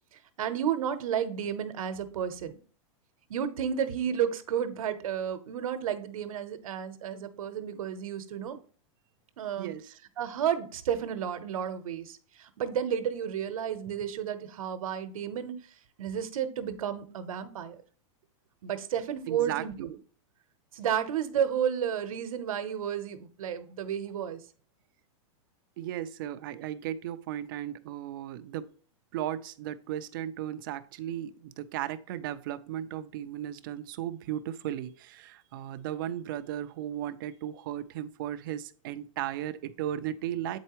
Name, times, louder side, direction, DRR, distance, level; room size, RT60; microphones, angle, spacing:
voice 1, 0.4-2.5 3.3-8.6 9.4-9.7 10.2-15.6 16.0-17.7 18.6-20.0 20.7-24.4, right 9 dB, 85° right, 10 dB, 0.9 m, -32 dB
voice 2, 9.6-9.9 19.3-19.9 25.8-28.7 29.1-40.6, right 11 dB, 40° right, 13 dB, 0.4 m, -36 dB
8.1 x 4.4 x 3.0 m, 0.43 s
supercardioid pair, 170°, 18 cm